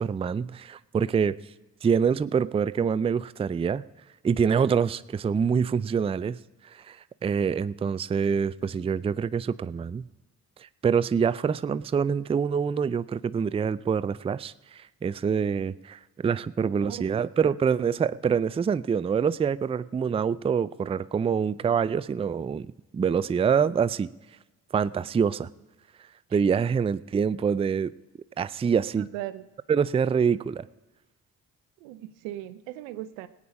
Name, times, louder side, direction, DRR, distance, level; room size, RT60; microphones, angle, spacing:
voice 1, 0.0-1.4 1.8-3.8 4.2-6.4 6.7-7.0 7.2-10.1 10.8-24.1 24.7-25.5 26.3-27.9 28.4-29.1 29.7-30.6, right 6 dB, 15° right, 18 dB, 0.3 m, -25 dB
voice 2, 29.0-29.4 31.8-33.3, right 14 dB, 90° right, 14 dB, 0.7 m, -37 dB
18.0 x 8.8 x 4.9 m, 1.1 s
hypercardioid pair, 55°, 41 cm